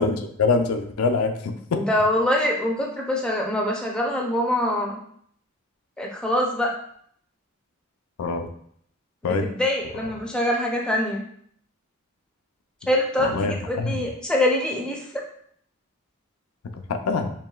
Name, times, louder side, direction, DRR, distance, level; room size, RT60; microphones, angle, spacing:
voice 1, 0.0-1.8 8.2-8.5 9.2-9.5 13.2-14.0 16.9-17.3, left 4 dB, 80° left, 6 dB, 0.4 m, -24 dB
voice 2, 1.7-5.0 6.0-6.7 9.2-11.2 12.9-15.0, left 1 dB, 5° left, 0 dB, 0.5 m, -24 dB
4.7 x 3.1 x 2.3 m, 0.64 s
head